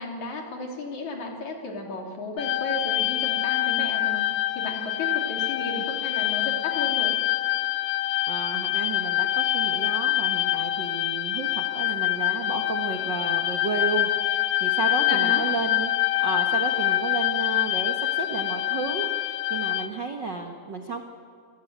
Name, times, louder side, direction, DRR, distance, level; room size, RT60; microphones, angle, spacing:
voice 1, 0.0-4.3 4.5-7.1 15.1-15.4, left 2 dB, 50° left, 1 dB, 4.2 m, -34 dB
sound 1, 2.4-19.9, left 14 dB, 80° left, 1.7 m, -25 dB
voice 2, 8.3-15.9 16.2-21.0, right 3 dB, 75° right, 3 dB, 1.0 m, -32 dB
26.5 x 18.0 x 9.5 m, 2.2 s
omnidirectional pair, 4.5 m